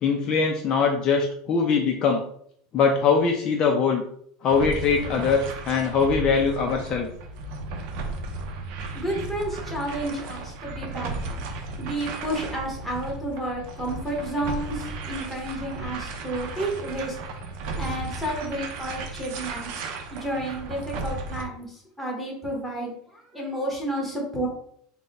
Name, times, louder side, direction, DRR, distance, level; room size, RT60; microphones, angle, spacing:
voice 1, 0.0-2.2 2.7-4.0 4.4-7.1, left 5 dB, 35° left, 2 dB, 0.4 m, -22 dB
sound 1, 4.5-21.4, right 3 dB, 60° right, 0.6 m, -35 dB
voice 2, 8.9-11.4 11.8-17.2 17.8-19.8 20.1-24.5, right 1 dB, ahead, -2 dB, 1.1 m, -31 dB
3.9 x 2.1 x 4.1 m, 0.65 s
supercardioid pair, 150°, 2 cm